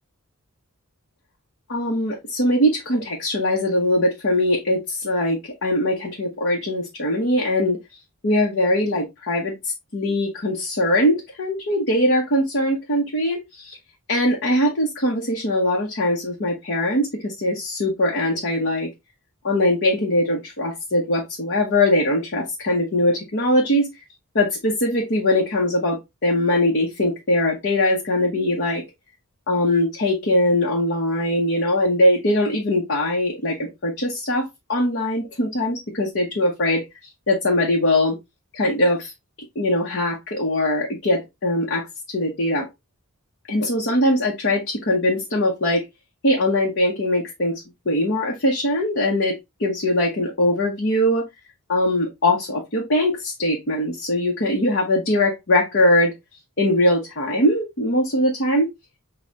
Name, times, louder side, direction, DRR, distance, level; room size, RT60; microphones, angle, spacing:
voice 1, 1.7-7.8 8.2-13.8 14.1-18.9 19.4-23.9 24.3-28.8 29.5-36.8 37.3-38.2 38.5-39.1 39.5-42.7 43.5-45.8 46.2-51.2 51.7-56.1 56.6-58.7, left 1 dB, 55° left, 1.0 m, -21 dB
6.4 x 2.3 x 2.9 m
head